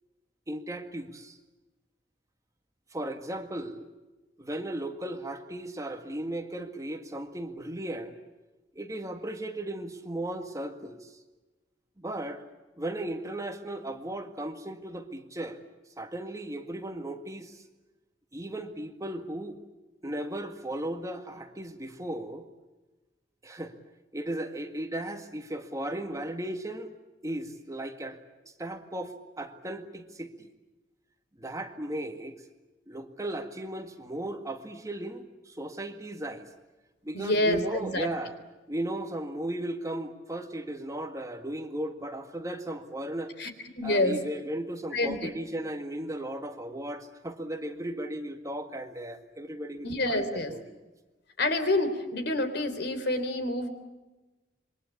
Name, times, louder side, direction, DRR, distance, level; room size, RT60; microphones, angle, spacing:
voice 1, 0.5-1.4 2.9-3.9 4.4-8.1 8.8-11.1 12.0-12.4 12.8-15.6 16.0-17.6 18.3-19.6 20.0-22.5 23.4-23.8 24.1-26.9 27.2-28.2 28.4-30.5 31.4-32.4 32.9-36.5 37.0-38.4 38.7-43.3 43.8-50.8, right 1 dB, 20° right, 5 dB, 1.9 m, -36 dB
voice 2, 37.1-38.1 43.4-44.2 44.9-45.3 49.8-50.5 51.4-53.7, left 1 dB, 65° left, 9 dB, 3.6 m, -28 dB
27.0 x 23.5 x 8.4 m, 1.1 s
head